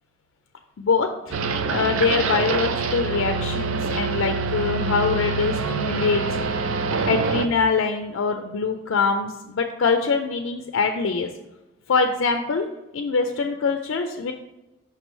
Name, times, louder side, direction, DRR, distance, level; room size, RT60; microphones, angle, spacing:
voice 1, 0.8-1.4 1.7-6.3 6.5-6.7 7.0-11.3 11.9-12.7 12.9-14.3, left 4 dB, 70° left, 6 dB, 0.4 m, -24 dB
sound 1, 1.3-7.5, right 4 dB, 80° right, 0.4 m, -25 dB
5.8 x 3.0 x 5.3 m, 1.0 s
head